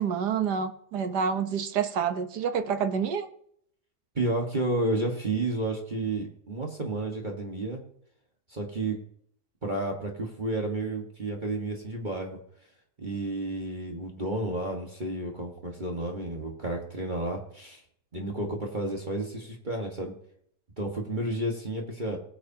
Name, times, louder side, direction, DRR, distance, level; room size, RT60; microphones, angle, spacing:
voice 1, 0.0-3.3, right 7 dB, 85° right, 9 dB, 1.6 m, -28 dB
voice 2, 4.1-7.8 8.5-9.0 9.6-12.4 13.0-17.8 18.1-20.1 20.8-22.2, right 2 dB, 30° right, 0 dB, 1.6 m, -31 dB
20.0 x 8.1 x 2.8 m, 0.66 s
omnidirectional pair, 1.7 m